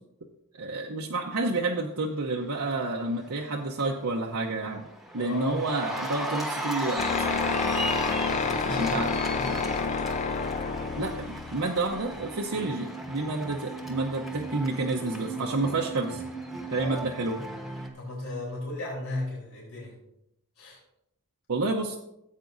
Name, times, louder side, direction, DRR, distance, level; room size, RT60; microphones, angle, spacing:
voice 1, 0.5-4.9 5.1-7.0 8.7-9.1 11.0-16.2 16.7-17.4 21.5-22.0, right 2 dB, 70° right, -1 dB, 0.8 m, -29 dB
Cheering, 3.0-3.4 3.8-17.9, right 1 dB, ahead, 1.1 m, -36 dB
voice 2, 5.2-5.6 7.8-9.6 16.7-17.0 17.9-19.9 20.6-20.8, left 1 dB, 85° left, -4 dB, 3.6 m, -36 dB
sound 1, 7.0-12.4, left 5 dB, 30° left, 0.3 m, -29 dB
15.0 x 8.2 x 2.6 m, 0.80 s
head